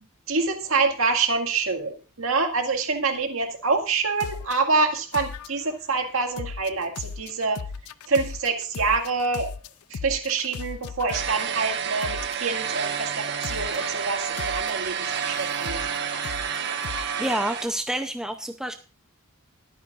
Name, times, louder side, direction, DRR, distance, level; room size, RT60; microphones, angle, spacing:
voice 1, 0.3-7.7 8.1-9.5 9.9-16.2, right 4 dB, 70° right, 3 dB, 2.1 m, -26 dB
sound 1, 4.2-4.7 5.1-5.8 6.4-11.4 12.0-12.6 13.4-13.9 14.4-17.1, left 6 dB, 85° left, 0.5 m, -37 dB
sound 2, 11.1-17.7, right 7 dB, 50° right, 1.4 m, -29 dB
voice 2, 17.2-18.7, right 1 dB, 5° right, 6 dB, 0.6 m, -28 dB
21.5 x 9.3 x 2.5 m, 0.35 s
head